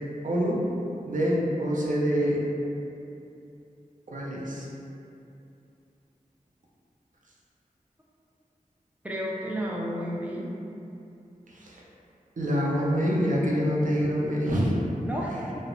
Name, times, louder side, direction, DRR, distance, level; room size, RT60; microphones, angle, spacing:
voice 1, 0.2-0.7 1.1-2.4 4.1-4.7 11.5-11.8 12.4-14.8, equal, 65° right, -4 dB, 0.5 m, -26 dB
voice 2, 9.0-10.4 15.1-15.5, equal, 10° right, -4 dB, 0.4 m, -32 dB
2.4 x 2.0 x 2.9 m, 2.7 s
wide cardioid pair, 50°, 14 cm